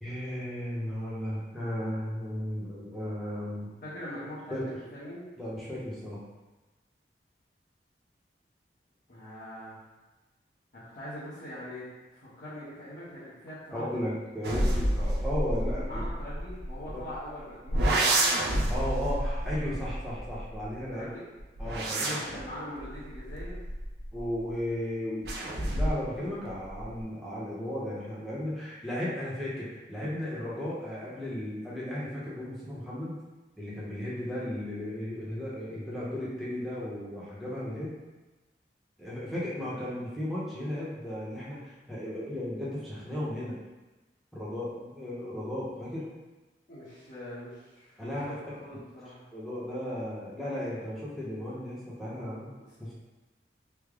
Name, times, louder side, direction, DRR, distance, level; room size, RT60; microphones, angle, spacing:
voice 1, 0.0-3.7 4.5-4.7 5.4-6.2 13.7-16.0 16.8-17.1 18.7-21.1 21.6-22.4 24.1-33.1 33.6-38.0 39.0-43.6 44.3-46.1 48.0-48.4 49.3-52.5 52.8-52.9, left 1 dB, ahead, -9 dB, 0.7 m, -35 dB
voice 2, 3.8-5.3 9.1-9.8 10.7-14.0 15.8-18.4 20.9-21.2 21.9-23.6 39.3-40.0 46.7-49.2 52.5-52.7, equal, 50° left, -12 dB, 0.8 m, -43 dB
sound 1, 14.4-17.2 17.7-20.8 21.4-24.4 25.2-26.1 26.5-27.0, right 1 dB, 60° right, 0.5 m, -29 dB
3.3 x 2.1 x 3.5 m, 1.2 s
head